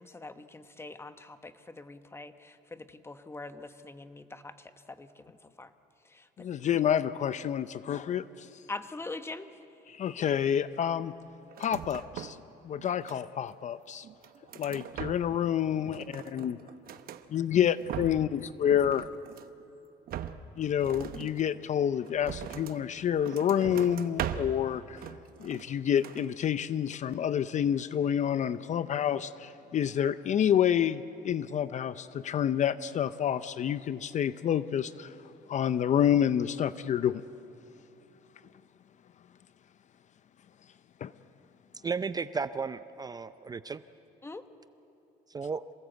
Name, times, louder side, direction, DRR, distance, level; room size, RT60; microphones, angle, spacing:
voice 1, 0.0-5.7 6.1-6.5 8.7-9.5 44.2-44.4, left 2 dB, 15° left, 9 dB, 1.1 m, -43 dB
voice 2, 6.4-8.6 9.9-11.1 11.6-12.4 12.6-14.1 14.6-16.6 17.3-19.1 20.6-25.1 25.4-35.1 35.5-37.2 41.0-41.1, left 9 dB, 45° left, 14 dB, 0.6 m, -28 dB
sound 1, 11.5-12.5 12.8-13.5 14.0-15.5 15.8-17.2 17.7-18.4 18.7-19.6 20.1-22.8 23.2-24.6 25.0-25.7 26.0-26.3, right 10 dB, 60° right, 1.0 m, -40 dB
voice 3, 41.8-43.8 45.3-45.6, right 5 dB, 25° right, 13 dB, 0.5 m, -34 dB
27.0 x 18.5 x 8.1 m, 2.8 s
cardioid pair, 110°, 17 cm